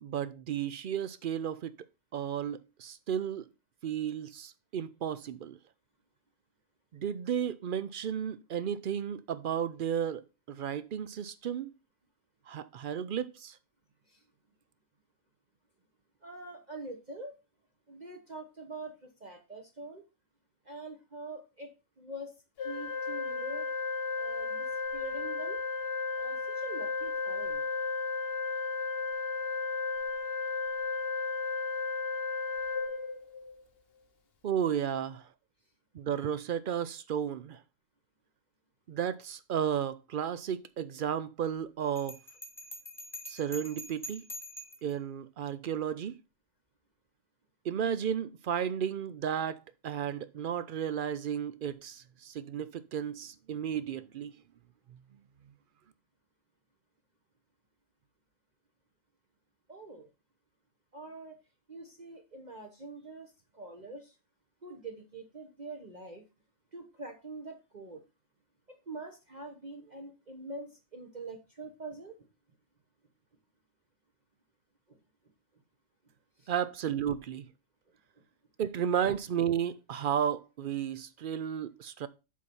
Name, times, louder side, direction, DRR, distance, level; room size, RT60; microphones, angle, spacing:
voice 1, 0.0-1.8 2.1-3.5 3.8-5.6 6.9-10.2 10.5-11.7 12.5-13.6 34.4-35.3 35.9-37.6 38.9-42.2 43.3-44.2 44.8-46.2 47.6-54.3 76.5-77.5 78.6-82.1, right 8 dB, 60° right, 0.5 m, -33 dB
voice 2, 16.2-17.3 17.9-20.0 20.7-21.7 22.0-22.3 22.6-23.7 24.2-25.6 26.2-27.6 59.7-60.1 60.9-61.3 61.7-64.1 64.6-66.2 66.7-68.0 68.9-72.1 74.9-75.0 76.4-76.5, right 2 dB, 35° right, 1.0 m, -44 dB
Organ, 22.6-33.6, left 4 dB, 55° left, 1.1 m, -34 dB
Bell, 42.0-44.9, left 1 dB, ahead, 1.4 m, -44 dB
7.5 x 4.2 x 5.3 m
omnidirectional pair, 1.4 m